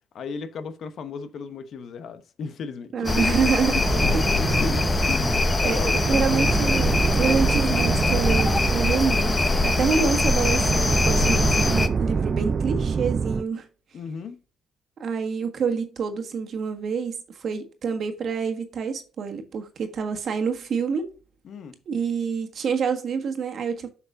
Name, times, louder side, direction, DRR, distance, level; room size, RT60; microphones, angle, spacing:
voice 1, 0.1-3.4 3.9-6.4 13.9-14.4 21.4-21.8, left 5 dB, 65° left, 0.9 m, -35 dB
voice 2, 2.9-3.8 5.6-13.7 15.0-21.1 21.9-23.9, right 6 dB, 60° right, 1.5 m, -27 dB
sound 1, 3.0-11.9, left 3 dB, 25° left, 0.8 m, -23 dB
sound 2, 3.8-13.4, right 5 dB, 40° right, 0.4 m, -26 dB
7.8 x 5.8 x 2.6 m
cardioid pair, 90°, 0 cm